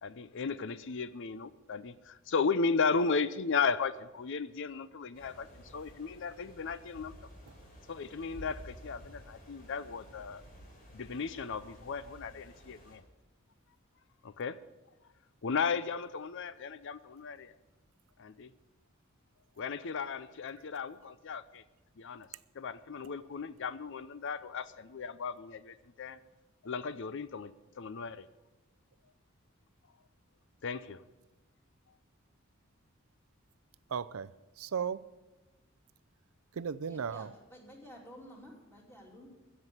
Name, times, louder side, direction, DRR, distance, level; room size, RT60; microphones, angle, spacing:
voice 1, 0.0-7.1 7.9-10.4 10.9-13.0 14.2-14.6 15.4-17.5 18.2-18.5 19.6-21.6 22.0-22.3 22.5-26.2 26.6-28.3 30.6-31.0, left 5 dB, 60° left, 0.5 m, -35 dB
sound 1, 5.1-13.0, equal, 45° left, 3.8 m, -53 dB
voice 2, 33.9-35.0 36.5-37.3, right 6 dB, 80° right, 0.5 m, -36 dB
voice 3, 36.9-39.3, equal, 10° left, 3.0 m, -52 dB
15.5 x 7.4 x 8.0 m
head